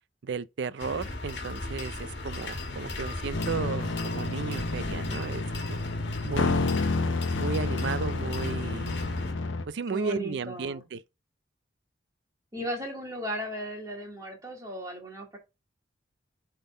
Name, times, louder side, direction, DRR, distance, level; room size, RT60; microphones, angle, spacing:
voice 1, 0.2-5.8 6.2-6.8 7.4-9.0 9.7-11.0, right 5 dB, 65° right, 0.4 m, -34 dB
sound 1, 0.8-9.3, left 2 dB, 65° left, 1.6 m, -37 dB
sound 2, 3.3-9.6, left 3 dB, 80° left, 0.8 m, -30 dB
voice 2, 9.9-10.8 12.5-15.4, equal, 20° right, 2.5 m, -36 dB
8.0 x 3.8 x 3.7 m
head